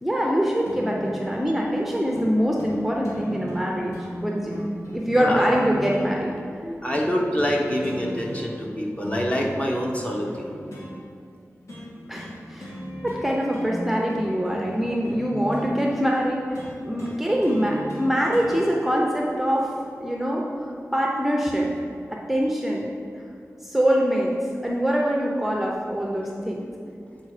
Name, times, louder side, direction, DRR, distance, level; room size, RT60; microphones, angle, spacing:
voice 1, 0.0-4.0 4.2-4.6 4.9-6.3 12.1-12.7 13.0-20.4 20.9-21.7 22.1-22.9 23.6-24.3 24.6-26.7, equal, 5° right, -2 dB, 0.7 m, -24 dB
sound 1, 0.7-1.3 2.1-2.3 2.6-2.8 3.0-6.1 6.9-7.6 7.8-8.7 9.0-10.9 11.7-11.9 12.2-12.4 12.6-13.3 13.5-15.7 16.5-18.5 19.6-19.7, equal, 65° left, 1.8 m, -37 dB
voice 2, 5.1-5.4 6.6-10.5, equal, 25° left, -1 dB, 1.0 m, -26 dB
7.7 x 4.2 x 4.9 m, 2.4 s
wide cardioid pair, 70°, 5 cm